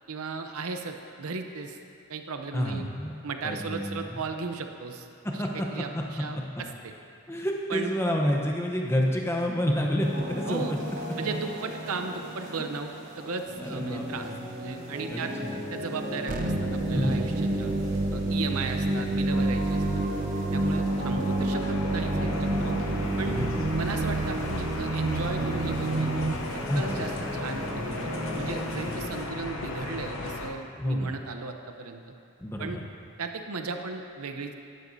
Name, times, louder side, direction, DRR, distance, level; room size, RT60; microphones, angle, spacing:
voice 1, 0.1-1.8 2.1-2.9 3.2-5.1 5.3-6.9 7.7-7.9 10.5-10.8 11.2-12.9 13.2-14.3 14.6-15.3 15.7-17.7 18.1-20.0 20.5-22.7 23.2-23.4 23.7-26.1 26.5-28.1 28.3-32.0 32.6-32.8 33.2-34.5, right 4 dB, 80° right, 5 dB, 0.7 m, -36 dB
voice 2, 2.5-3.2 3.4-4.2 5.4-5.7 5.9-6.0 7.3-10.8 13.6-14.4 15.1-15.6 16.9-17.5 20.4-20.5 23.3-23.7 26.6-27.0 30.8-31.1 32.4-32.8, equal, 10° left, 0 dB, 0.8 m, -29 dB
sound 1, 10.0-29.1, equal, 60° right, 2.6 m, -37 dB
sound 2, 16.3-26.3, right 2 dB, 35° right, 0.5 m, -28 dB
sound 3, 20.8-30.5, left 2 dB, 70° left, 0.8 m, -36 dB
12.0 x 11.0 x 2.7 m, 2.7 s
head